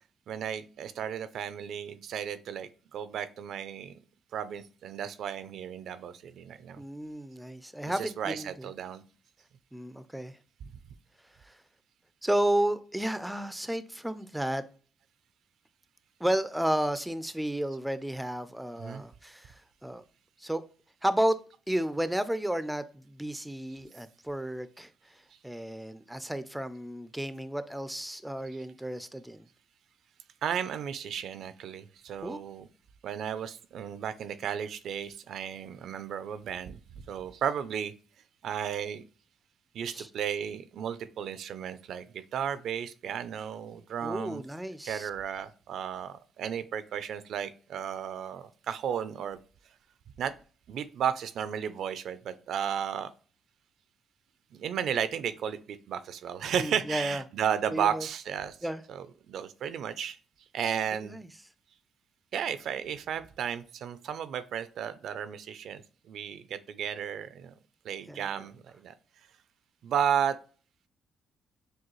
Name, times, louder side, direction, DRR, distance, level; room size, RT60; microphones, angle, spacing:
voice 1, 0.3-3.9 4.3-6.8 7.9-9.0 18.8-19.0 30.4-32.7 33.0-36.8 37.1-37.9 38.4-39.0 39.7-44.4 44.8-49.4 50.2-50.3 50.7-53.1 54.5-60.2 60.5-61.2 62.3-67.5 67.8-68.9 69.8-70.4, right 8 dB, 70° right, 0.4 m, -34 dB
voice 2, 6.8-8.7 9.7-10.4 12.2-14.6 16.2-19.5 19.8-20.0 20.4-20.6 21.0-21.4 21.7-24.9 25.4-29.4 32.2-32.4 39.9-40.1 44.0-45.1 56.6-57.2 57.7-58.1 58.6-58.8 60.9-61.3 68.1-68.4, right 1 dB, 5° right, 0.4 m, -32 dB
6.2 x 2.3 x 3.0 m
cardioid pair, 90°, 0 cm